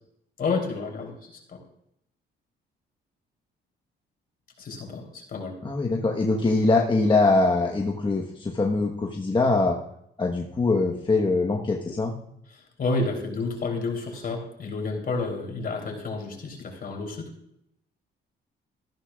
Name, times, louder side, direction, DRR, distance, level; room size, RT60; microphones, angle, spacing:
voice 1, 0.4-1.6 4.6-5.6 12.5-17.3, left 3 dB, 50° left, 1 dB, 3.3 m, -30 dB
voice 2, 5.6-9.8 10.2-12.2, left 3 dB, 25° left, 0 dB, 1.1 m, -23 dB
13.5 x 11.5 x 2.4 m, 0.76 s
cardioid pair, 90°, 20 cm